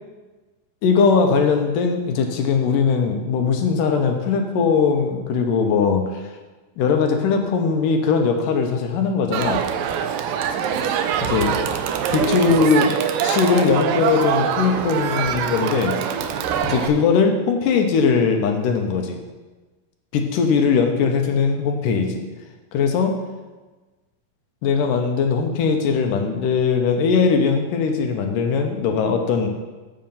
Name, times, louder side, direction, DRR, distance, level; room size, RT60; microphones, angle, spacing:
voice 1, 0.8-6.2 6.8-9.6 11.2-11.6 12.1-12.9 13.2-15.9 16.6-19.2 20.1-22.2 22.7-23.2 24.6-29.5, left 5 dB, 75° left, 4 dB, 2.2 m, -20 dB
Crowd, 9.3-16.9, right 8 dB, 80° right, 2.1 m, -23 dB
7.6 x 5.5 x 7.2 m, 1.2 s
omnidirectional pair, 4.3 m